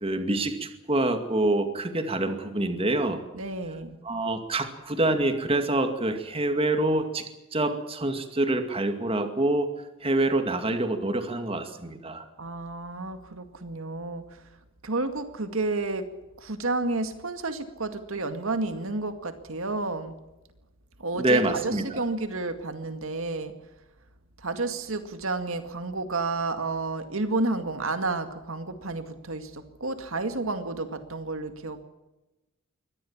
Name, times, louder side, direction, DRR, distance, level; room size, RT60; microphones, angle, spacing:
voice 1, 0.0-3.2 4.0-7.2 7.5-9.7 10.0-12.2 21.1-22.0, right 2 dB, 25° right, 7 dB, 2.2 m, -26 dB
voice 2, 3.3-4.0 12.4-14.5 14.8-16.1 16.4-20.2 21.0-23.5 24.4-31.8, right 3 dB, 70° right, 9 dB, 2.1 m, -31 dB
23.5 x 18.5 x 7.3 m, 1.0 s
head